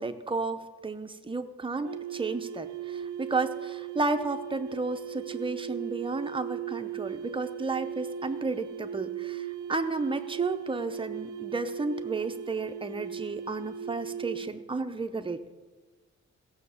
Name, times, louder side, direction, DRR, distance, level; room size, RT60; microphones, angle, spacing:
voice 1, 0.0-15.5, right 3 dB, 20° right, 7 dB, 0.7 m, -32 dB
sound 1, 1.8-14.6, right 9 dB, 85° right, 0.6 m, -38 dB
16.0 x 6.4 x 7.1 m, 1.3 s
wide cardioid pair, 145°, 29 cm